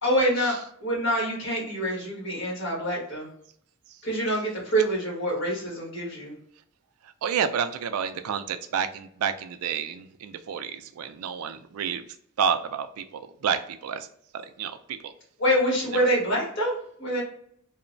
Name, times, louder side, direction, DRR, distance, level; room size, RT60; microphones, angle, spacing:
voice 1, 0.0-0.5 0.8-3.3 4.0-6.3 15.4-17.2, equal, 60° left, -4 dB, 1.5 m, -26 dB
voice 2, 7.2-12.0 12.4-14.1 14.3-15.1 15.9-16.1, right 7 dB, 90° right, 10 dB, 0.3 m, -30 dB
2.9 x 2.1 x 2.5 m, 0.65 s
head